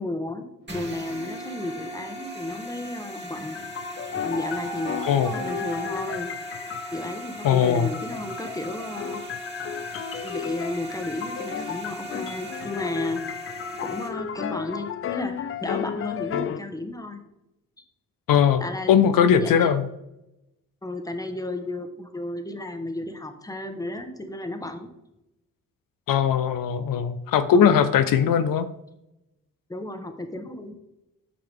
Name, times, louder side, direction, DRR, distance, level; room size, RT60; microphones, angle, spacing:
voice 1, 0.0-3.6 4.2-6.3 6.9-9.2 10.2-13.2 13.8-17.2 18.6-19.7 20.8-24.9 27.5-27.9 29.7-30.7, left 1 dB, 10° left, 6 dB, 1.1 m, -33 dB
sound 1, 0.7-14.1, equal, 35° right, 2.4 m, -38 dB
sound 2, 1.0-1.6 4.0-5.9, right 2 dB, 65° left, 2.4 m, -38 dB
sound 3, 3.4-16.6, left 9 dB, 40° left, 0.4 m, -34 dB
voice 2, 7.4-7.9 18.3-18.6 18.9-19.9 26.1-28.7, left 8 dB, 85° left, 11 dB, 0.6 m, -20 dB
8.3 x 5.8 x 3.5 m, 0.88 s
cardioid pair, 80°, 33 cm